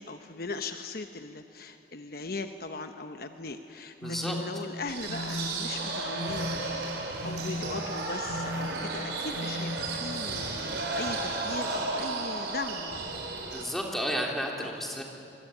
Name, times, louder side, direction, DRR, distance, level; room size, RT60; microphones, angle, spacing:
voice 1, 0.0-6.5 7.2-13.1 14.6-14.7, left 3 dB, 55° left, 7 dB, 1.0 m, -39 dB
sound 1, 4.0-4.4 5.1-5.5 6.1-6.5 7.2-7.6 8.3-8.7 9.3-9.8, left 1 dB, 85° left, 1.9 m, -36 dB
voice 2, 4.0-4.4 13.5-15.0, equal, ahead, -1 dB, 3.3 m, -32 dB
sound 2, 4.9-13.6, right 3 dB, 70° right, 4.2 m, -33 dB
25.5 x 21.5 x 9.1 m, 2.6 s
head